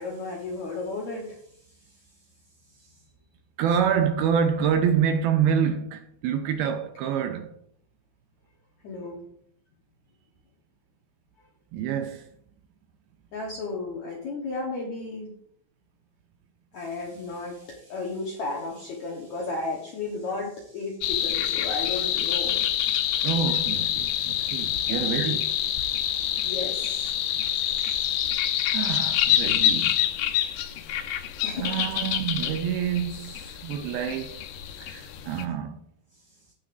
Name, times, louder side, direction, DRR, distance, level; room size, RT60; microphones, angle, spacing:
voice 1, 0.0-1.4 2.8-2.9 8.8-9.2 13.3-15.3 16.7-22.6 24.9-25.3 26.4-27.2 31.4-31.8 34.8-34.9, left 3 dB, 65° left, 2.0 m, -34 dB
voice 2, 3.6-7.5 11.7-12.3 23.2-25.4 28.7-30.0 31.6-34.4 34.8-35.8, right 8 dB, 80° right, 2.4 m, -27 dB
sound 1, 21.0-35.4, left 11 dB, 85° left, 1.9 m, -27 dB
18.0 x 6.2 x 2.6 m
omnidirectional pair, 4.7 m